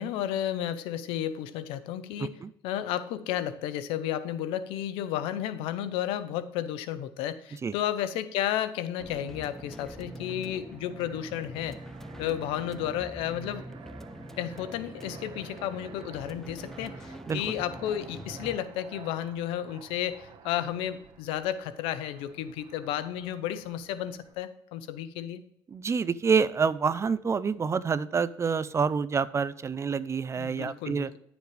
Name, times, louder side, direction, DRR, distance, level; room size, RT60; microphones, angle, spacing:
voice 1, 0.0-11.8 12.2-13.6 14.4-25.4 30.4-31.2, left 11 dB, 85° left, 14 dB, 0.8 m, -32 dB
voice 2, 2.2-2.5 7.6-7.7 17.3-17.4 25.7-31.1, right 5 dB, 30° right, 16 dB, 0.5 m, -27 dB
sound 1, 9.0-18.6, equal, 5° left, 0.7 m, -44 dB
Fixed-wing aircraft airplane, 9.1-24.3, right 6 dB, 60° right, 1.3 m, -51 dB
11.0 x 7.2 x 3.3 m, 0.74 s
supercardioid pair, 85°, 9 cm